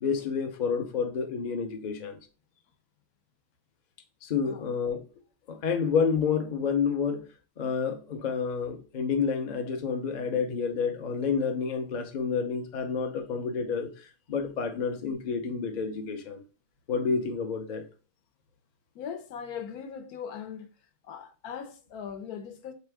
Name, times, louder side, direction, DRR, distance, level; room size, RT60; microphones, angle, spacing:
voice 1, 0.0-2.2 4.2-5.0 5.5-7.2 7.6-16.4 16.9-17.8, left 6 dB, 50° left, 0.5 m, -29 dB
voice 2, 18.9-20.7 21.1-22.7, left 7 dB, 80° left, 1.2 m, -39 dB
4.1 x 3.6 x 3.4 m
omnidirectional pair, 1.6 m